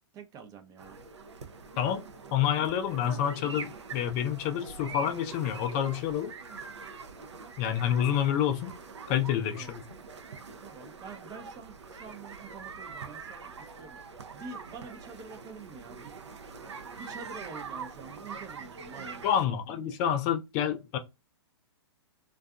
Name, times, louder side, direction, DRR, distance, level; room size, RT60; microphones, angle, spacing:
voice 1, 0.1-1.0 9.5-9.7 10.6-14.0 14.3-16.1 16.9-20.0, right 5 dB, 25° right, 0.5 m, -47 dB
sound 1, 0.8-19.5, right 5 dB, 85° right, 0.5 m, -44 dB
voice 2, 2.3-6.3 7.6-8.7 9.1-9.8 19.2-21.0, left 9 dB, 35° left, 0.4 m, -28 dB
2.5 x 2.3 x 2.3 m
hypercardioid pair, 120°, 15 cm